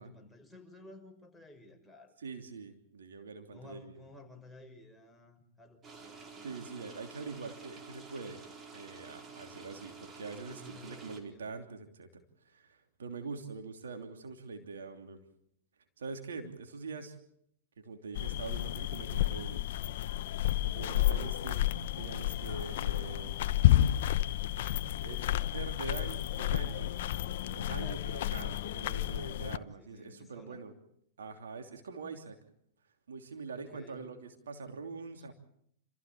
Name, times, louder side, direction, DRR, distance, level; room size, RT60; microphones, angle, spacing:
voice 1, 0.0-2.1 3.5-6.6 10.5-11.5 25.0-25.7 27.8-28.9 29.8-30.6 33.5-34.1 35.2-35.3, left 2 dB, ahead, 0 dB, 6.0 m, -54 dB
voice 2, 2.2-4.0 6.4-8.4 8.7-15.2 16.0-17.2 17.8-19.6 20.6-21.6 22.0-23.4 25.0-27.0 27.4-30.7 31.2-32.3 33.1-35.3, right 4 dB, 80° right, 5 dB, 3.0 m, -44 dB
sound 1, 5.8-11.2, right 4 dB, 30° right, 4.4 m, -50 dB
sound 2, 18.2-29.6, left 13 dB, 65° left, 0.9 m, -31 dB
28.5 x 15.0 x 8.6 m, 0.71 s
hypercardioid pair, 105°, 0 cm